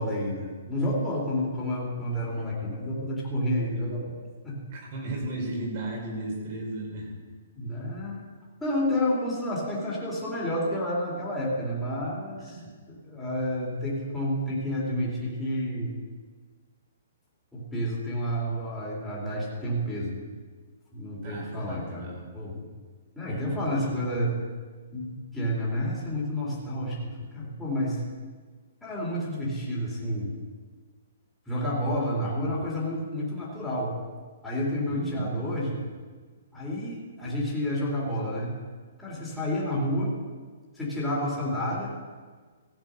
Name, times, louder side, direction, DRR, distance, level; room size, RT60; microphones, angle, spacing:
voice 1, 0.0-4.6 7.6-8.2 8.6-12.6 12.9-15.9 17.5-20.2 20.9-22.7 23.2-24.3 24.9-28.0 28.8-30.3 31.5-33.9 34.4-35.8 36.5-38.5 39.0-40.1 40.7-41.9, equal, 5° left, -7 dB, 2.7 m, -30 dB
voice 2, 4.7-7.1 12.5-12.7 21.2-22.3 23.2-23.9 34.9-35.4, right 2 dB, 40° right, 0 dB, 4.0 m, -36 dB
15.5 x 7.4 x 6.2 m, 1.5 s
hypercardioid pair, 165°, 0 cm